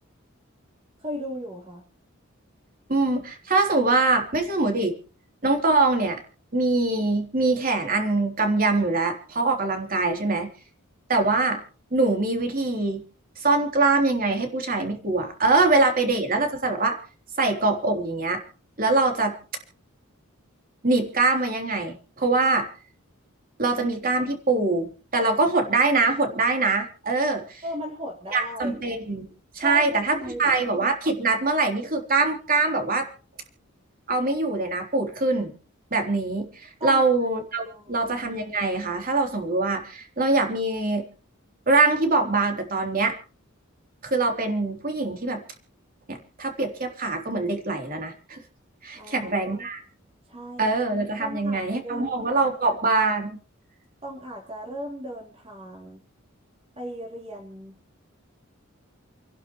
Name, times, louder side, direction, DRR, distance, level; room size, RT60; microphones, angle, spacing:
voice 1, 1.0-1.8 27.6-28.8 29.6-30.7 36.8-37.1 37.6-38.0 48.9-49.7 50.3-50.7 51.2-52.5 54.0-56.0 56.8-57.7, equal, 30° right, -3 dB, 4.0 m, -36 dB
voice 2, 2.9-4.9 5.4-6.2 6.5-10.5 11.1-11.6 11.9-13.0 13.4-17.0 17.4-18.4 18.8-19.3 20.8-22.7 23.6-27.6 28.3-29.3 29.5-33.1 34.1-35.5 35.9-41.0 41.7-43.1 44.0-45.4 46.1-48.4 48.8-49.8 50.6-53.4, right 3 dB, 45° right, 3 dB, 3.5 m, -23 dB
29.5 x 11.5 x 3.2 m, 0.37 s
head